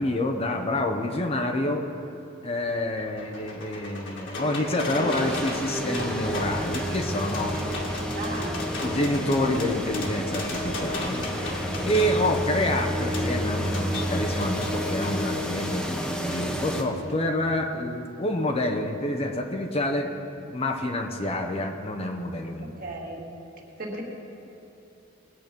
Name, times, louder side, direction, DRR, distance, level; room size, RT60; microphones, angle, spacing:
voice 1, 0.0-1.8 2.4-7.6 8.8-11.2 11.8-22.7, left 1 dB, 30° left, 4 dB, 0.8 m, -28 dB
sound 1, 2.7-15.2 16.3-16.4 16.8-16.9, left 1 dB, 65° left, 2.1 m, -36 dB
sound 2, 5.1-16.8, equal, 5° left, 1.0 m, -30 dB
sound 3, 5.9-13.7, equal, 75° right, 1.5 m, -40 dB
voice 2, 8.2-8.6 22.6-23.3 23.8-24.0, right 2 dB, 45° right, -2 dB, 2.1 m, -35 dB
20.0 x 7.8 x 5.2 m, 3.0 s
head